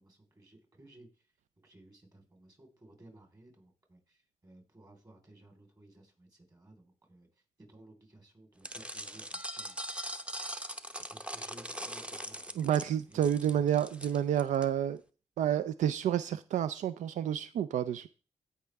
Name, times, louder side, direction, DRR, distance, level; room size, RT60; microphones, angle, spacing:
voice 1, 0.0-1.3 1.6-9.8 10.9-12.7 12.9-13.6, right 1 dB, 30° right, 3 dB, 4.0 m, -58 dB
sound 1, 8.6-14.7, equal, 10° right, 0.7 m, -41 dB
voice 2, 12.6-15.0 15.4-18.1, right 10 dB, 90° right, 14 dB, 0.4 m, -29 dB
16.5 x 5.5 x 3.5 m, 0.35 s
cardioid pair, 80°, 12 cm